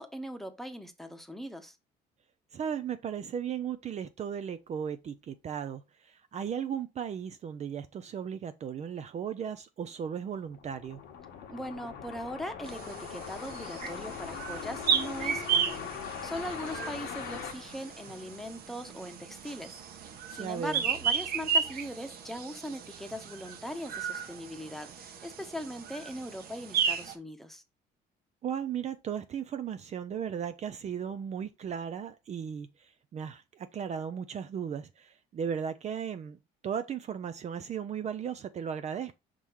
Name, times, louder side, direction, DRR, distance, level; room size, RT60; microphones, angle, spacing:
voice 1, 0.0-1.8 11.5-19.8 20.3-27.6, equal, ahead, 1.0 m, -40 dB
voice 2, 2.5-11.0 20.4-20.8 28.4-36.4 36.6-39.2, right 8 dB, 40° right, 0.5 m, -36 dB
sound 1, 10.3-18.7, left 7 dB, 90° left, 1.4 m, -41 dB
sound 2, 12.6-27.1, right 7 dB, 65° right, 1.1 m, -34 dB
5.5 x 3.8 x 4.6 m
cardioid pair, 110°, 17 cm